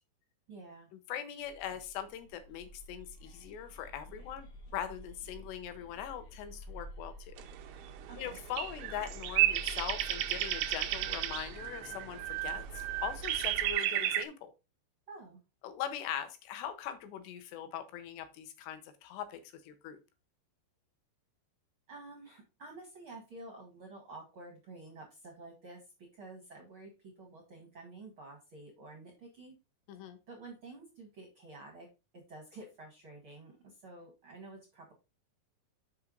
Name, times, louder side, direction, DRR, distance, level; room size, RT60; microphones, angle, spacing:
voice 1, 0.5-0.9 8.1-8.4 15.1-15.4 21.9-29.6 30.3-31.9 32.1-34.9, right 2 dB, 45° right, 1 dB, 1.8 m, -50 dB
voice 2, 1.1-4.5 4.7-7.3 8.2-14.5 15.6-20.0 29.9-30.2, left 9 dB, 80° left, 10 dB, 3.0 m, -41 dB
sound 1, 1.4-13.7, right 1 dB, 55° left, 2.6 m, -49 dB
sound 2, 7.4-14.3, right 13 dB, 80° right, 2.5 m, -33 dB
7.0 x 5.8 x 3.9 m, 0.28 s
omnidirectional pair, 5.0 m